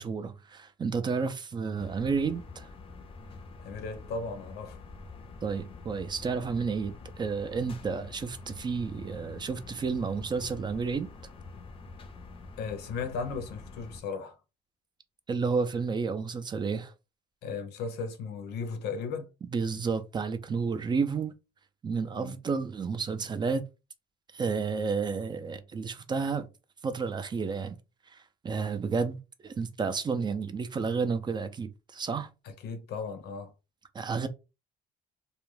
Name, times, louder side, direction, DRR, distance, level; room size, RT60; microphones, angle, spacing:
voice 1, 0.0-2.7 5.4-11.1 15.3-16.9 19.5-21.3 21.8-23.6 24.3-26.5 26.8-27.8 28.1-32.3 33.9-34.3, right 5 dB, 25° right, 0.4 m, -31 dB
sound 1, 1.7-14.0, left 3 dB, 35° left, 0.5 m, -46 dB
voice 2, 3.6-4.8 12.6-14.4 17.4-19.3 22.2-22.4 32.6-33.5, left 5 dB, 75° left, 0.6 m, -36 dB
2.3 x 2.2 x 3.1 m
cardioid pair, 110°, 17 cm